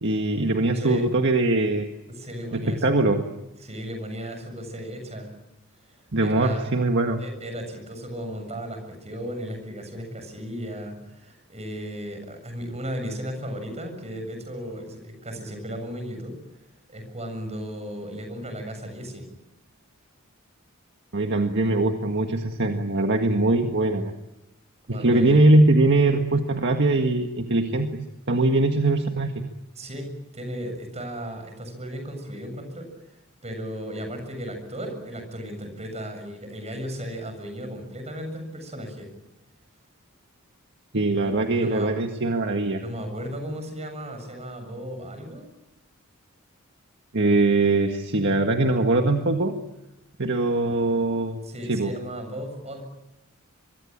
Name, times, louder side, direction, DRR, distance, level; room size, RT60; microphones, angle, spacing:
voice 1, 0.0-1.9 2.5-3.2 6.1-7.2 21.1-24.1 24.9-27.9 28.3-29.3 40.9-42.8 47.1-49.5 50.2-51.4 51.7-51.9, right 2 dB, 55° right, 4 dB, 1.8 m, -21 dB
voice 2, 2.1-2.9 3.6-5.3 5.9-6.7 7.2-16.4 16.9-19.3 24.9-25.4 29.8-33.2 33.4-39.1 41.2-41.9 42.8-45.5 51.4-52.8, equal, 30° right, 6 dB, 7.3 m, -35 dB
25.0 x 23.0 x 8.8 m, 0.94 s
head